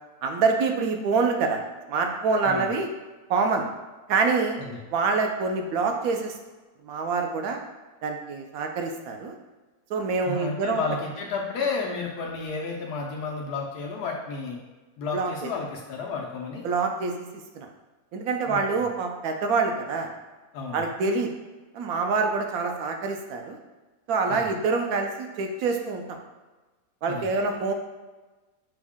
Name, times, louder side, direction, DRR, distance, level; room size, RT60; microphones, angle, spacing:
voice 1, 0.2-1.6 1.9-2.9 3.3-3.7 4.1-4.6 4.9-6.3 6.8-7.6 8.0-9.3 9.9-10.8 15.1-15.3 16.6-17.2 17.5-17.7 18.1-20.1 20.7-21.3 21.7-23.6 24.1-26.2 27.0-27.7, right 4 dB, 75° right, 3 dB, 1.0 m, -26 dB
voice 2, 10.2-14.6 15.0-16.6 18.5-18.8 20.5-20.8 24.3-24.5 27.1-27.3, left 4 dB, 90° left, -1 dB, 1.2 m, -32 dB
6.1 x 2.1 x 3.5 m, 1.2 s
omnidirectional pair, 1.7 m